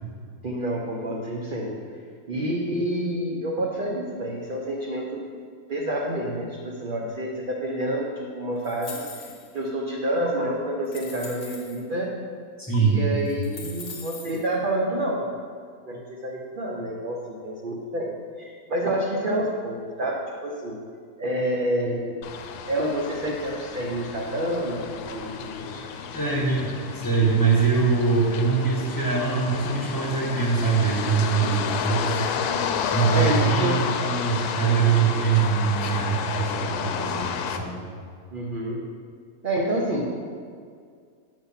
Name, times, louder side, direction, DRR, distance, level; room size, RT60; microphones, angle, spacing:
voice 1, 0.4-1.9 2.3-5.3 5.7-9.0 9.5-12.1 12.7-15.3 15.9-20.8 21.2-22.2 22.7-26.5 33.1-33.9 38.3-38.9 39.4-40.1, right 1 dB, 45° right, -2 dB, 0.8 m, -28 dB
sound 1, 8.6-9.6 10.3-10.4 10.8-11.8 12.7-12.8 13.2-14.5, left 4 dB, 55° left, 1.2 m, -41 dB
voice 2, 12.6-13.0 26.1-32.2 32.9-37.8, right 5 dB, 15° left, -5 dB, 1.5 m, -23 dB
sound 2, 22.2-37.6, left 7 dB, 85° left, 1.1 m, -31 dB
7.2 x 5.7 x 5.6 m, 2.1 s
omnidirectional pair, 1.6 m